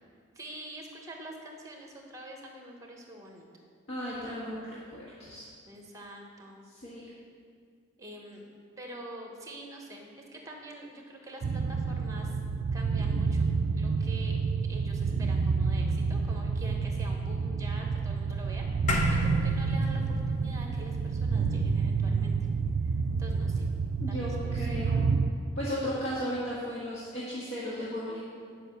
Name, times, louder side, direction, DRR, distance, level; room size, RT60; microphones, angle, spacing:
voice 1, 0.3-3.5 5.6-6.6 8.0-8.4 8.8-12.4 12.7-13.4 13.7-14.4 14.7-22.3 22.8-23.7 24.1-24.7, right 1 dB, 15° right, 1 dB, 1.2 m, -46 dB
voice 2, 3.9-5.5 6.7-7.1 24.0-25.0 25.6-28.2, equal, 65° left, -7 dB, 1.6 m, -35 dB
sound 1, 11.4-25.3, right 4 dB, 55° right, 0.3 m, -29 dB
sound 2, 18.9-23.5, left 1 dB, 40° left, 1.0 m, -34 dB
9.9 x 5.5 x 6.4 m, 2.2 s
head